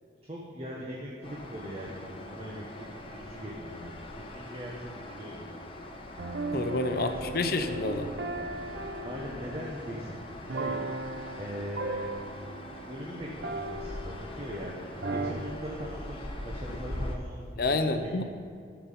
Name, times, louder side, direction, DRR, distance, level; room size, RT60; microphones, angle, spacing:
voice 1, 0.3-5.6 7.0-7.5 8.6-10.7 11.4-12.1 12.9-18.2, equal, 35° right, -3 dB, 1.2 m, -41 dB
sound 1, 1.2-17.2, left 1 dB, 30° left, 1.0 m, -42 dB
sound 2, 6.2-14.6 15.0-15.3, right 2 dB, 75° right, 0.7 m, -37 dB
voice 2, 6.5-8.1 17.6-18.2, left 3 dB, 55° left, 8 dB, 0.6 m, -29 dB
12.0 x 7.1 x 5.6 m, 2.2 s
head